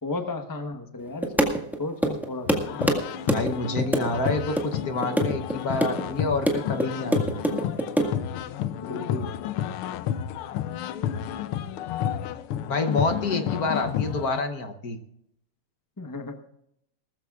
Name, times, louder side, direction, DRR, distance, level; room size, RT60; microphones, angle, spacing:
voice 1, 0.0-1.5 1.8-2.8 8.8-9.3 16.0-16.5, left 3 dB, 20° left, 6 dB, 0.5 m, -34 dB
sound 1, 1.2-1.8 2.0-3.0 3.3-3.5 3.8-4.3 4.6-4.7 5.0-5.5 5.8-6.0 6.3-8.1, right 1 dB, ahead, 1.5 m, -23 dB
sound 2, 2.5-14.4, left 10 dB, 90° left, 1.6 m, -31 dB
voice 2, 3.3-7.4 12.7-15.0, left 3 dB, 55° left, 6 dB, 1.2 m, -28 dB
19.5 x 14.0 x 2.4 m, 0.77 s
omnidirectional pair, 2.4 m